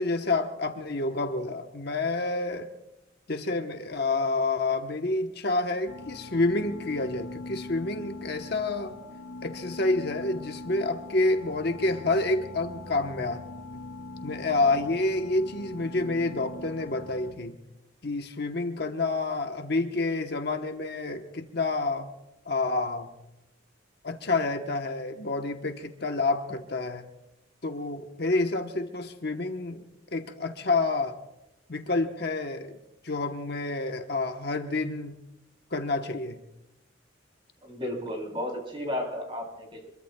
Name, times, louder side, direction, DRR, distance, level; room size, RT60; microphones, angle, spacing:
voice 1, 0.0-2.7 3.3-8.9 9.4-13.4 14.2-17.6 18.0-22.1 22.4-23.1 24.0-27.1 27.6-29.8 30.1-31.2 31.7-32.8 33.0-35.1 35.7-36.4, left 2 dB, 50° left, 5 dB, 1.1 m, -28 dB
sound 1, 5.9-17.3, left 2 dB, 85° left, 2.8 m, -42 dB
voice 2, 37.6-39.9, left 1 dB, 25° right, 0 dB, 3.6 m, -33 dB
26.5 x 22.5 x 2.3 m, 0.91 s
head